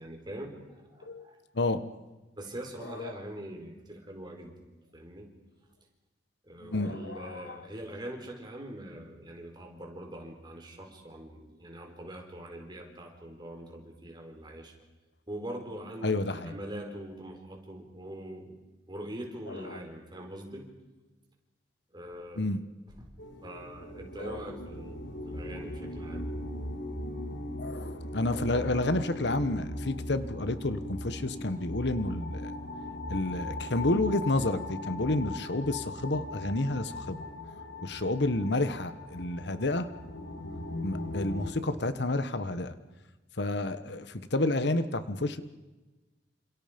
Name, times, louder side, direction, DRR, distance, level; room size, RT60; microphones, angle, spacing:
voice 1, 0.0-1.4 2.4-4.6 4.9-5.3 6.4-14.8 15.3-18.6 18.9-20.7 21.9-22.5 23.0-23.1 23.4-26.3, right 1 dB, 25° right, 2 dB, 4.9 m, -43 dB
voice 2, 2.8-3.1 6.6-7.6 16.0-16.5 19.5-19.8 22.4-22.6 24.2-24.4 27.6-32.5 33.1-37.2 37.8-39.9 40.8-42.7 43.4-45.4, left 2 dB, 70° left, 12 dB, 1.3 m, -30 dB
sound 1, 23.2-41.5, left 1 dB, 85° left, 2.7 m, -39 dB
29.0 x 27.0 x 5.3 m, 1.1 s
head